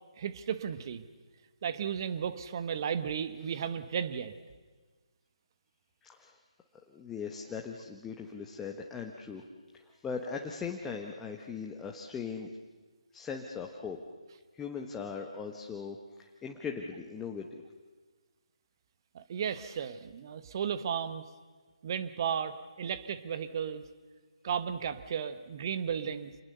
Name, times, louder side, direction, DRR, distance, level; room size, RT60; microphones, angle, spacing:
voice 1, 0.2-1.0 1.6-4.3 19.1-21.2 21.8-23.8 24.4-26.3, right 7 dB, 40° right, 12 dB, 1.4 m, -34 dB
voice 2, 6.0-6.4 6.9-9.4 9.7-12.5 13.1-14.0 14.5-17.6, left 6 dB, 10° left, 1 dB, 1.3 m, -39 dB
28.0 x 20.5 x 6.9 m, 1.4 s
figure-of-eight pair, 150°, 3 cm